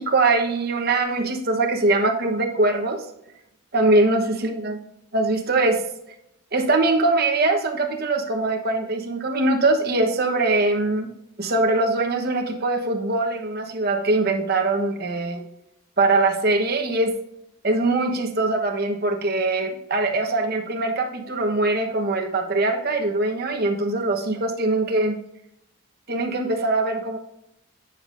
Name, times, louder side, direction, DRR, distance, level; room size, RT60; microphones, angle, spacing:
voice 1, 0.0-3.1 3.7-4.8 5.1-5.8 6.5-11.1 11.4-15.4 16.0-17.1 17.6-25.2 26.1-27.2, right 2 dB, 45° right, 3 dB, 1.0 m, -22 dB
9.5 x 6.7 x 2.6 m, 0.78 s
head